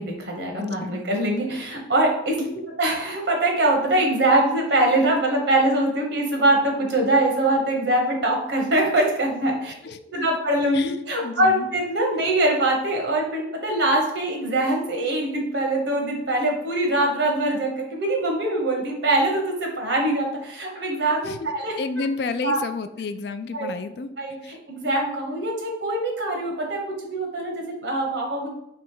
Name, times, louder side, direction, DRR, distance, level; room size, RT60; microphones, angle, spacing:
voice 1, 0.0-2.4 2.8-9.7 10.1-21.7 22.4-22.6 23.5-23.7 24.2-28.5, right 1 dB, 85° right, 1 dB, 1.2 m, -23 dB
voice 2, 0.6-1.1 9.8-10.0 10.7-10.9 11.2-11.7 21.2-21.4 21.8-24.1 24.4-24.6, left 4 dB, 70° left, 10 dB, 0.3 m, -31 dB
3.3 x 3.0 x 4.7 m, 0.77 s
head